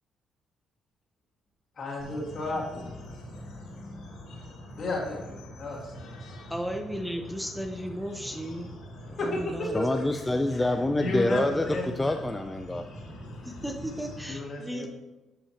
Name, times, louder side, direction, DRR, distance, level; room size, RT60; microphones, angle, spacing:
voice 1, 1.8-3.1 4.8-6.3 9.2-10.2 10.5-10.7 10.9-12.2 14.3-14.9, left 1 dB, 55° left, -3 dB, 2.4 m, -33 dB
sound 1, 2.0-14.3, equal, 85° left, 2.8 m, -43 dB
voice 2, 6.5-8.7 9.1-9.8 13.4-14.9, equal, 5° right, 3 dB, 0.8 m, -35 dB
voice 3, 9.7-12.9, left 2 dB, 15° left, 6 dB, 0.4 m, -27 dB
12.5 x 5.6 x 2.9 m, 1.1 s
cardioid pair, 90°, 0 cm